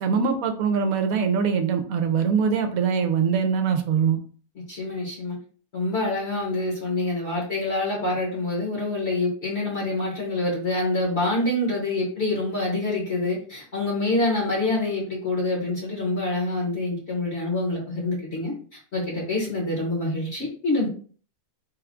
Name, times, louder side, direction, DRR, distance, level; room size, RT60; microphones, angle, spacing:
voice 1, 0.0-4.2, right 6 dB, 70° right, 6 dB, 1.0 m, -23 dB
voice 2, 4.7-5.4 5.7-18.5 18.9-20.9, left 2 dB, 45° left, -4 dB, 1.3 m, -26 dB
3.7 x 2.3 x 3.5 m, 0.43 s
omnidirectional pair, 1.6 m